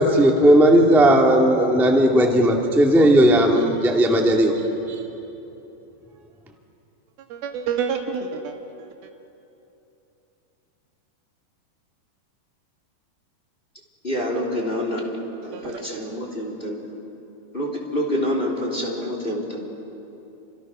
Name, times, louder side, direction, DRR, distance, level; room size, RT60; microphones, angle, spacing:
voice 1, 0.0-4.5 4.9-5.0, right 1 dB, ahead, 0 dB, 1.3 m, -16 dB
voice 2, 7.3-8.9 15.4-16.1 19.0-19.3, right 6 dB, 85° right, 3 dB, 3.7 m, -30 dB
voice 3, 14.0-15.1 15.4-16.8 17.5-19.6, equal, 15° left, -1 dB, 3.5 m, -27 dB
29.5 x 27.0 x 6.3 m, 3.0 s
omnidirectional pair, 4.2 m